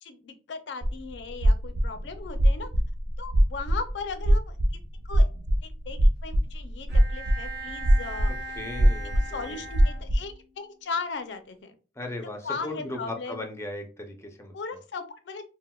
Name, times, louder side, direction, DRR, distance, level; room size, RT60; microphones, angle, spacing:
voice 1, 0.0-2.7 3.2-4.6 5.0-5.3 5.6-8.6 9.3-11.7 12.4-13.4 14.5-15.4, left 4 dB, 90° left, 0.5 m, -37 dB
sound 1, 0.8-10.2, equal, 90° right, 0.5 m, -22 dB
Bowed string instrument, 6.9-10.6, right 2 dB, 70° right, 1.0 m, -40 dB
voice 2, 8.6-9.6 12.0-14.5, left 2 dB, 15° left, 0.5 m, -37 dB
3.9 x 2.1 x 2.2 m
head